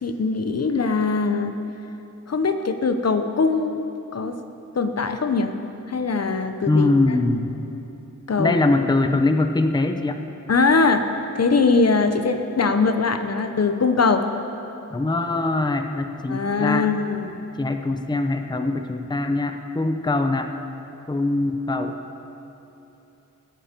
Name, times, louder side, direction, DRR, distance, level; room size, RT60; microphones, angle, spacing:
voice 1, 0.0-1.6 2.3-4.4 4.8-5.6 5.9-6.9 8.3-8.6 10.5-11.1 11.3-14.2 16.3-17.4, left 4 dB, 55° left, 8 dB, 0.7 m, -21 dB
voice 2, 6.7-7.5 8.4-10.2 14.9-16.9 17.6-20.5 21.1-21.9, left 2 dB, 15° left, 7 dB, 0.6 m, -22 dB
17.5 x 8.8 x 5.1 m, 3.0 s
wide cardioid pair, 80°, 31 cm